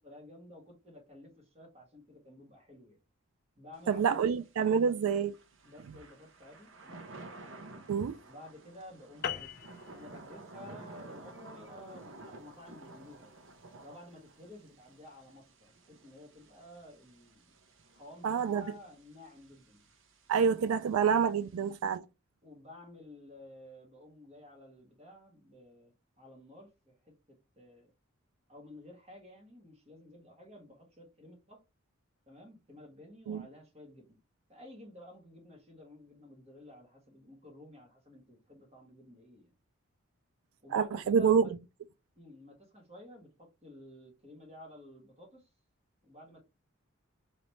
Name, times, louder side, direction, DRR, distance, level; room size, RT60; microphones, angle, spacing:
voice 1, 0.0-3.0 3.5-4.4 4.8-5.0 5.6-7.1 8.3-13.4 13.8-17.5 17.9-19.8 22.4-27.9 28.5-31.6 32.3-34.2 34.5-39.5 40.6-41.5 42.2-45.5 46.0-46.4, left 1 dB, 30° right, 1.5 m, -53 dB
Thunder / Rain, 3.7-22.0, right 2 dB, 65° right, 0.8 m, -53 dB
voice 2, 3.9-5.3 7.9-8.2 18.2-18.6 20.3-22.0 33.3-33.4 40.7-41.4, right 6 dB, 80° right, 0.3 m, -27 dB
sound 1, 9.2-14.0, left 8 dB, 45° left, 0.4 m, -43 dB
Human voice, 11.3-13.0, left 1 dB, 15° right, 1.7 m, -56 dB
4.0 x 3.3 x 3.0 m
head